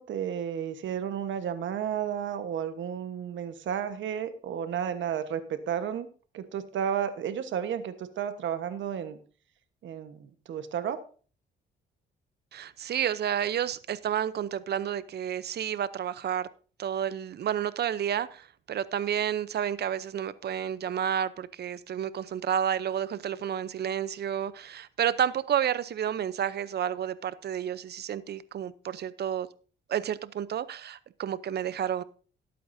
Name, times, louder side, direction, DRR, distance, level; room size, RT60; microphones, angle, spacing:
voice 1, 0.0-6.1 6.3-9.2 9.8-11.0, right 8 dB, 70° right, 10 dB, 1.3 m, -32 dB
voice 2, 12.5-16.5 16.8-29.5 29.9-32.0, right 9 dB, 55° right, 16 dB, 0.7 m, -30 dB
18.0 x 8.5 x 2.7 m, 0.40 s
cardioid pair, 90°, 20 cm